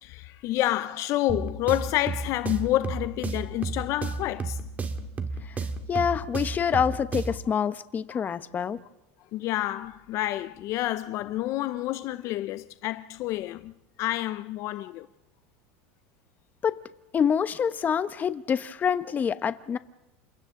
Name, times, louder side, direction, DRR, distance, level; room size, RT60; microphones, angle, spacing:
voice 1, 0.0-4.6 8.1-8.2 9.3-13.7 14.0-15.1, left 15 dB, 50° left, 0.6 m, -29 dB
sound 1, 1.3-7.5, right 4 dB, 25° right, 2.0 m, -33 dB
voice 2, 5.9-8.8 16.6-16.8 17.1-19.8, left 7 dB, 25° left, 1.0 m, -26 dB
29.5 x 26.5 x 3.8 m
supercardioid pair, 120°, 7 cm